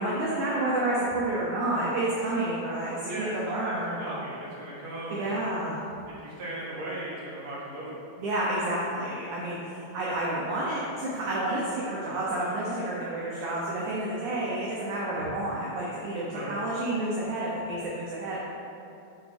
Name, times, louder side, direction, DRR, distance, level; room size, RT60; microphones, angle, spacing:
voice 1, 0.0-4.0 5.1-5.8 8.2-18.4, right 1 dB, 75° right, -6 dB, 1.8 m, -30 dB
voice 2, 3.1-5.3 6.2-8.0 15.2-15.3 16.3-16.5, right 1 dB, 40° right, -8 dB, 1.5 m, -37 dB
6.9 x 6.3 x 4.2 m, 2.7 s
omnidirectional pair, 4.6 m